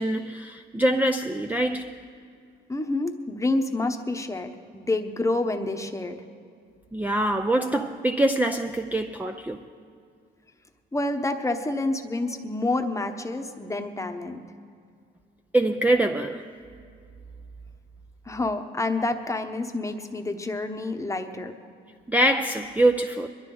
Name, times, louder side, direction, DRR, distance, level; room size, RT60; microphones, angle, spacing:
voice 1, 0.0-2.0 6.9-9.6 15.5-16.5 22.1-23.3, right 1 dB, 10° right, 0.5 m, -24 dB
voice 2, 2.7-6.2 10.9-14.4 18.3-21.5, left 2 dB, 15° left, 1.0 m, -28 dB
22.0 x 12.0 x 3.9 m
cardioid pair, 90°, 20 cm